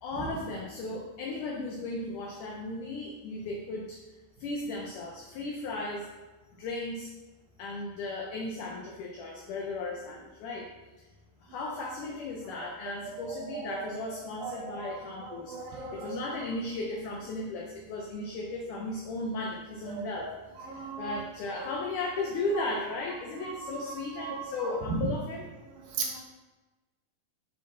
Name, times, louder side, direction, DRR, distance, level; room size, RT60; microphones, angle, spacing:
voice 1, 0.0-4.0 4.4-6.1 6.6-7.1 7.6-10.7 11.0-11.1 11.4-20.3 20.6-25.5, left 2 dB, 75° left, -1 dB, 1.9 m, -36 dB
voice 2, 13.1-13.8 14.4-16.2 20.0-20.3 20.6-21.1 23.4-23.9 24.2-24.4 25.9-26.2, right 5 dB, 75° right, 0 dB, 2.6 m, -38 dB
9.4 x 5.0 x 3.9 m, 1.2 s
omnidirectional pair, 4.5 m